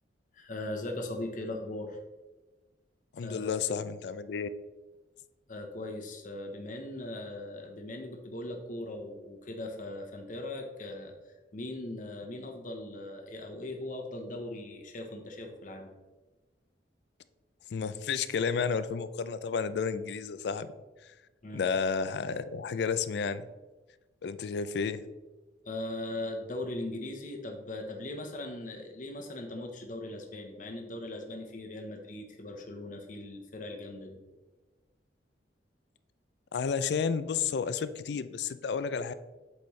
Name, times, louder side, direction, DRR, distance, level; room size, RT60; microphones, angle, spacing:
voice 1, 0.3-2.0 3.2-3.6 5.5-11.1 11.5-15.9 21.4-21.6 25.6-34.2, left 1 dB, 45° left, 3 dB, 0.9 m, -39 dB
voice 2, 3.1-4.5 17.7-20.7 21.5-23.5 24.2-25.0 36.5-39.1, left 6 dB, 65° left, 13 dB, 0.4 m, -31 dB
8.1 x 4.2 x 3.2 m, 1.2 s
head